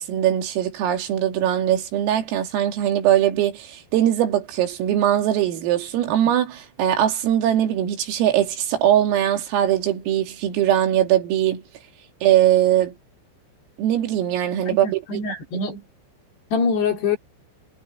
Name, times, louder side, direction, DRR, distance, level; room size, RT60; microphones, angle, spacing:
voice 1, 0.0-11.6 12.2-12.9 13.8-15.0, right 11 dB, 85° right, 5.2 m, -21 dB
voice 2, 14.7-15.8 16.5-17.2, left 4 dB, 55° left, 4.9 m, -24 dB
omnidirectional pair, 5.9 m